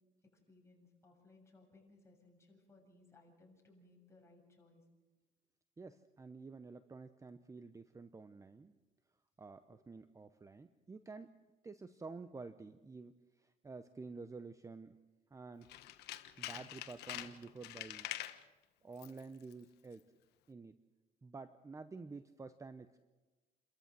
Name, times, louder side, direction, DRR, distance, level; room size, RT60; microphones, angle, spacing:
voice 1, 0.5-4.8 9.7-9.8, left 2 dB, 15° left, -1 dB, 7.4 m, -64 dB
voice 2, 5.8-8.8 9.4-11.4 11.6-15.0 15.3-15.7 16.4-18.1 18.8-20.0 20.5-20.8 21.2-23.0, right 4 dB, 20° right, 11 dB, 0.8 m, -50 dB
Tools, 15.6-18.4 18.9-19.2 19.5-19.6, left 14 dB, 80° left, 1.2 m, -45 dB
29.0 x 14.0 x 7.6 m, 1.2 s
cardioid pair, 110°, 17 cm